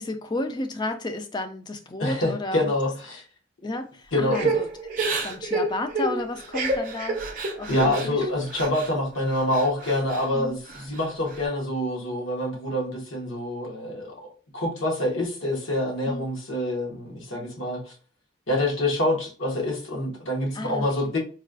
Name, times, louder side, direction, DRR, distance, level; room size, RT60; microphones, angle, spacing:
voice 1, 0.0-2.7 3.6-4.7 5.1-7.2 7.6-8.3 10.3-10.6 16.1-16.3 20.5-21.1, left 2 dB, 20° left, 0.3 m, -32 dB
voice 2, 2.0-3.2 4.1-4.5 7.7-17.9 18.5-21.2, left 1 dB, 75° left, 1.2 m, -26 dB
Crying sobbing / Breathing, 4.3-8.9 9.3-10.3 10.7-11.4, right 3 dB, 40° right, 0.5 m, -29 dB
4.1 x 2.3 x 2.5 m
head